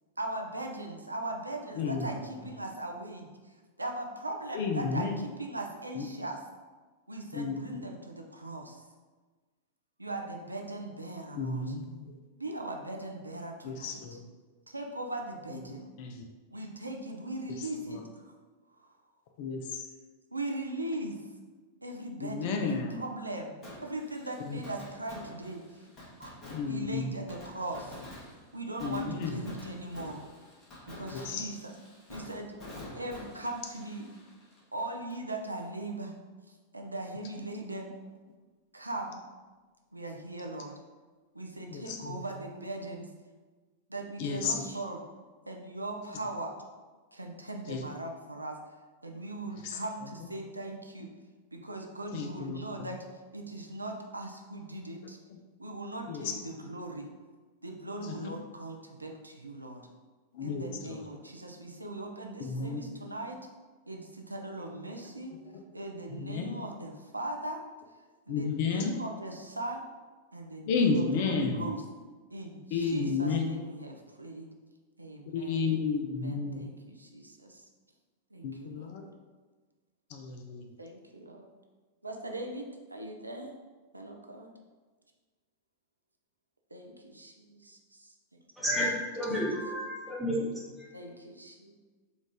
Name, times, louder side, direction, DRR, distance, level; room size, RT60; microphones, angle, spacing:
voice 1, 0.2-3.3 3.8-5.1 5.4-6.4 7.1-8.8 10.0-11.6 12.4-14.0 14.7-15.9 16.5-18.3 20.3-21.2 21.8-25.6 26.2-26.3 26.7-27.9 28.5-30.2 30.9-31.7 32.1-32.6 32.9-34.1 34.7-36.1 36.7-37.9 38.7-39.2 39.9-40.7 41.3-43.1 43.9-45.0 45.5-46.5 47.1-48.6 49.0-51.1 51.5-53.0 53.3-55.2 55.6-57.1 57.6-59.9 60.4-63.4 63.9-65.3 65.7-67.6 68.3-69.8 70.3-71.8 72.3-74.5 75.0-75.8 76.2-77.6 78.3-78.9 80.8-81.5 82.0-83.5 83.9-84.5 86.7-88.1 90.9-91.8, right 2 dB, 85° right, 2 dB, 0.4 m, -39 dB
voice 2, 1.8-2.1 4.5-5.1 5.9-6.0 7.3-7.8 11.3-12.2 13.6-14.2 15.5-16.2 17.6-18.0 19.4-19.8 22.2-22.9 24.4-24.6 26.5-27.1 28.8-29.5 31.1-31.5 41.7-42.2 44.2-44.6 47.7-47.8 49.6-49.8 52.1-52.9 56.1-56.3 58.0-58.3 60.3-61.1 62.4-62.8 65.4-65.6 66.1-66.6 68.3-68.9 70.7-71.6 72.7-73.4 75.3-76.7 78.4-79.1 80.1-80.6, left 5 dB, 50° left, 3 dB, 0.4 m, -32 dB
Fireworks, 23.6-35.3 35.6-35.7 42.3-42.4, left 1 dB, 30° left, 1.3 m, -48 dB
voice 3, 89.1-90.9, equal, ahead, -6 dB, 1.0 m, -31 dB
4.0 x 2.4 x 3.4 m, 1.4 s
figure-of-eight pair, 95°, 0 cm